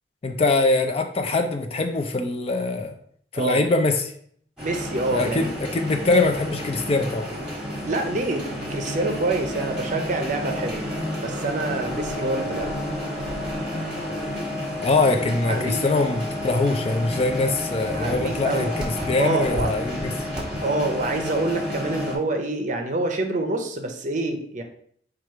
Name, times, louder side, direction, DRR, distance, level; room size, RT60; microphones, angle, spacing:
voice 1, 0.2-2.9 3.3-4.1 5.1-7.3 14.8-20.1, left 3 dB, 35° left, 5 dB, 0.4 m, -23 dB
sound 1, 4.6-22.2, left 1 dB, 5° right, 1.4 m, -30 dB
voice 2, 4.6-5.5 7.8-10.8 11.2-12.7 15.4-15.9 17.9-18.7 19.2-19.7 20.6-24.6, right 2 dB, 45° right, 5 dB, 0.6 m, -26 dB
4.5 x 2.4 x 4.5 m, 0.62 s
head